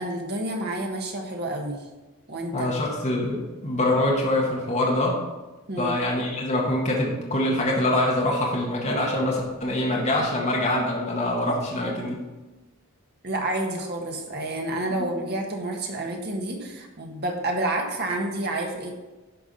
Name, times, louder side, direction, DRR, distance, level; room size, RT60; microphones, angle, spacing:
voice 1, 0.0-1.8 2.3-2.7 5.7-5.9 13.2-18.9, right 1 dB, 50° right, 1 dB, 1.6 m, -29 dB
voice 2, 2.5-5.2 5.8-12.2 15.0-15.1, left 1 dB, 35° left, -3 dB, 1.6 m, -24 dB
11.0 x 4.8 x 5.4 m, 1.2 s
head